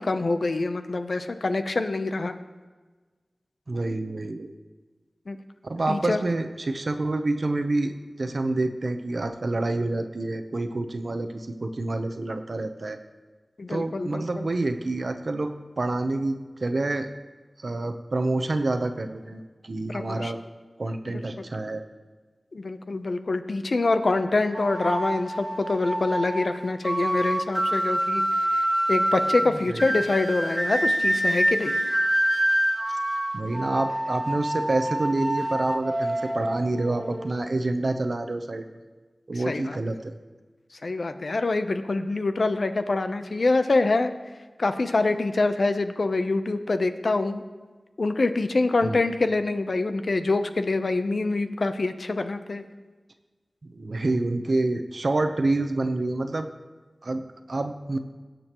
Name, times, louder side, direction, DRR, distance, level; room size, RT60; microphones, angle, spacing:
voice 1, 0.0-2.3 5.3-5.4 5.9-6.2 13.6-14.5 19.9-20.3 21.1-21.5 22.5-31.7 39.3-39.8 40.7-44.2 44.6-47.4 48.0-52.6, left 3 dB, 75° left, 9 dB, 0.7 m, -25 dB
voice 2, 3.7-4.5 5.6-7.9 8.2-13.0 13.7-17.1 17.6-20.4 20.8-21.8 29.7-29.9 33.3-38.8 39.3-40.1 48.8-49.0 53.6-56.5 57.0-58.0, right 2 dB, 65° right, 7 dB, 0.8 m, -28 dB
sound 1, 24.5-37.3, right 1 dB, 20° right, 0.8 m, -26 dB
19.5 x 7.7 x 3.0 m, 1.3 s
wide cardioid pair, 50°, 0 cm